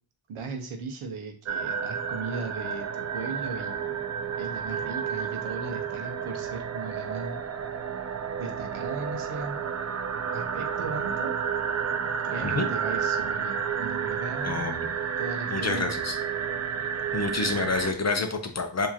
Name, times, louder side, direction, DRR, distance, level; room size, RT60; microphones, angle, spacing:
voice 1, 0.3-4.0 4.4-7.4 8.4-9.9 10.3-11.4 12.2-14.7 15.2-16.0, right 4 dB, 85° right, 4 dB, 0.9 m, -37 dB
sound 1, 1.5-17.9, right 7 dB, 35° right, 0.4 m, -31 dB
voice 2, 14.4-14.9 15.5-16.2 17.1-18.9, left 3 dB, 35° left, 5 dB, 0.7 m, -28 dB
4.7 x 2.9 x 2.8 m, 0.43 s
cardioid pair, 75°, 48 cm